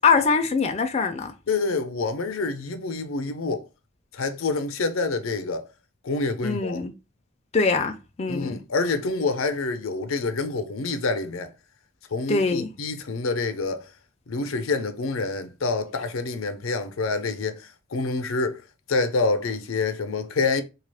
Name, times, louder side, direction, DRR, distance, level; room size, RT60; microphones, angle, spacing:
voice 1, 0.0-1.3 6.4-6.9 7.5-8.6 12.3-12.7, left 4 dB, 30° left, 0.4 m, -23 dB
voice 2, 1.5-3.7 4.1-5.7 6.0-6.8 8.3-11.5 12.1-13.9 14.3-18.6 18.9-20.6, left 3 dB, 90° left, 0.6 m, -27 dB
3.3 x 2.4 x 3.3 m
head